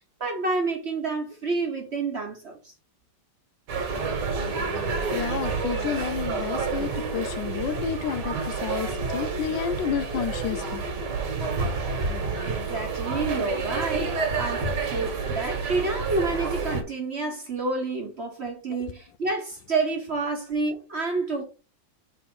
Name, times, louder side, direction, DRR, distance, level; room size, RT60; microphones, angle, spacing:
voice 1, 0.2-2.7 12.4-21.4, right 3 dB, 40° right, 1.2 m, -29 dB
sound 1, 3.7-16.8, right 4 dB, 65° right, 1.9 m, -29 dB
voice 2, 5.1-8.4 8.6-10.8, left 9 dB, 75° left, 1.3 m, -30 dB
4.5 x 4.1 x 5.3 m
omnidirectional pair, 2.1 m